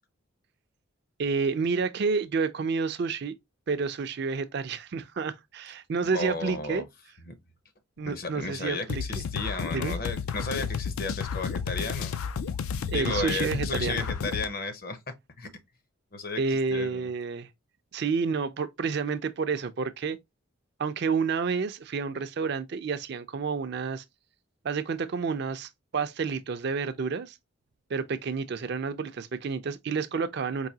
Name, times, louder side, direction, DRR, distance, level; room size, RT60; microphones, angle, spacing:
voice 1, 1.2-3.3 3.7-6.8 8.0-9.0 9.7-10.0 12.9-14.1 16.4-17.5 17.9-20.2 20.8-24.0 24.6-27.4 27.9-30.7, right 5 dB, 50° right, 0.4 m, -29 dB
voice 2, 6.1-6.9 7.3-7.4 8.0-12.2 12.9-15.5 16.1-17.1, left 3 dB, 45° left, 0.7 m, -34 dB
sound 1, 8.9-14.5, left 6 dB, 80° left, 0.4 m, -32 dB
4.7 x 2.6 x 2.7 m
head